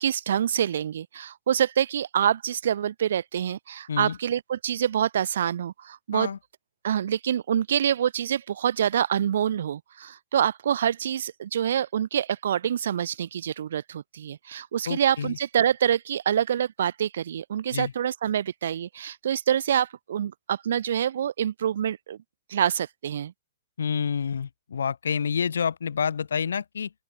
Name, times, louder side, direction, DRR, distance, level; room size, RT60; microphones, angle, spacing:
voice 1, 0.0-6.3 6.8-22.2 22.5-23.3, right 9 dB, 70° right, 2.8 m, -26 dB
voice 2, 14.9-15.4 17.7-17.9 23.8-26.9, left 7 dB, 80° left, 4.6 m, -28 dB
open air
hypercardioid pair, 130°, 0 cm